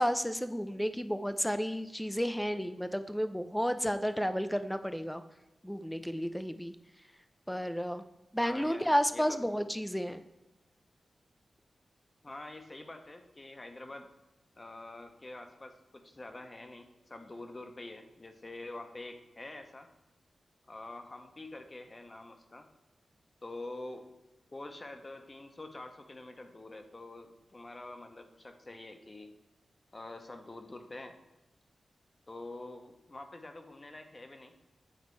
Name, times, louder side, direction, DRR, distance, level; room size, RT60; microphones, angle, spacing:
voice 1, 0.0-5.2 5.6-6.7 7.5-8.0 8.3-10.2, equal, 5° left, 10 dB, 0.4 m, -32 dB
voice 2, 8.4-9.4 12.2-14.1 14.6-19.9 20.7-22.7 23.4-24.1 24.5-29.3 29.9-31.2 32.3-34.6, left 2 dB, 35° left, 6 dB, 0.8 m, -46 dB
8.9 x 4.0 x 3.2 m, 1.0 s
cardioid pair, 65°, 0 cm